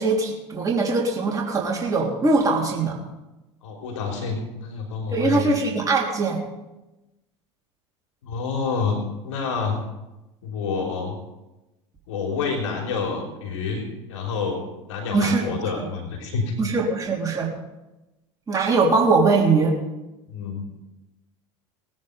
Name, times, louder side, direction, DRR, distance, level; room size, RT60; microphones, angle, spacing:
voice 1, 0.0-3.0 5.1-6.4 15.1-15.6 16.6-17.5 18.5-19.7, right 3 dB, 20° right, -2 dB, 3.4 m, -21 dB
voice 2, 3.6-5.6 8.2-9.8 10.4-11.2 12.1-14.6 14.9-16.5 20.3-20.7, left 5 dB, 75° left, 1 dB, 3.4 m, -28 dB
19.5 x 9.6 x 5.3 m, 0.99 s
hypercardioid pair, 80°, 16 cm